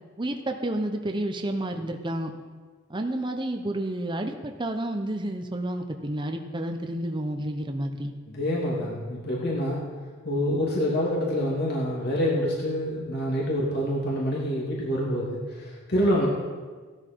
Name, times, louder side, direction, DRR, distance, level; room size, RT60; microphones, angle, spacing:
voice 1, 0.2-2.3 2.9-8.1, right 1 dB, 25° right, 4 dB, 0.9 m, -30 dB
voice 2, 8.3-9.8 10.2-16.3, equal, 55° left, -4 dB, 2.9 m, -26 dB
17.0 x 12.5 x 4.7 m, 1.4 s
head